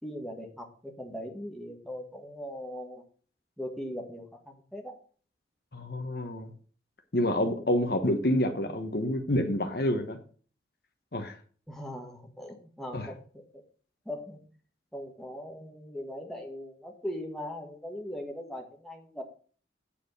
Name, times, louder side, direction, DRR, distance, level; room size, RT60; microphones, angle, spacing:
voice 1, 0.0-3.0 3.6-5.0 7.6-7.7 11.7-13.6 14.0-14.4 14.9-19.2, equal, ahead, 1 dB, 1.6 m, -40 dB
voice 2, 5.7-6.5 7.1-10.2 11.1-11.4 12.9-13.1, left 1 dB, 55° left, 6 dB, 1.1 m, -28 dB
8.5 x 5.0 x 6.5 m, 0.42 s
head